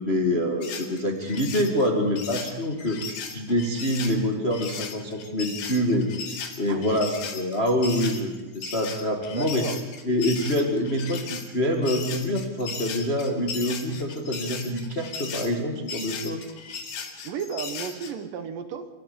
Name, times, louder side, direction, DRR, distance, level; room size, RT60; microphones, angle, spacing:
voice 1, 0.0-3.0 3.3-6.1 6.6-9.6 10.0-16.4, left 1 dB, 30° left, 2 dB, 1.1 m, -26 dB
sound 1, 0.6-18.1, left 6 dB, 70° left, 3.9 m, -36 dB
voice 2, 6.7-7.0 9.3-9.8 17.2-18.9, right 7 dB, 65° right, 8 dB, 2.6 m, -34 dB
28.5 x 13.5 x 8.5 m, 1.2 s
omnidirectional pair, 4.6 m